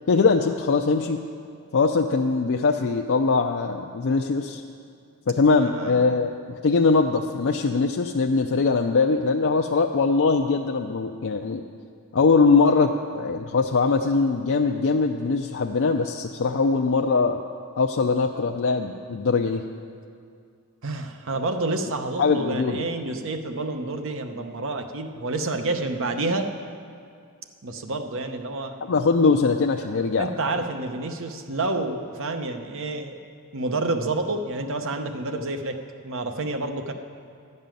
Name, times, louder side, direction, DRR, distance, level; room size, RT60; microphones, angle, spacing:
voice 1, 0.1-1.2 1.7-4.6 5.3-11.6 12.1-17.4 17.8-19.6 22.2-22.8 28.9-30.3, left 4 dB, 60° left, 2 dB, 0.5 m, -21 dB
voice 2, 5.6-6.2 20.8-26.5 27.6-28.7 30.2-33.2 33.5-36.9, right 2 dB, 60° right, 6 dB, 0.8 m, -29 dB
12.5 x 5.5 x 9.0 m, 2.3 s
head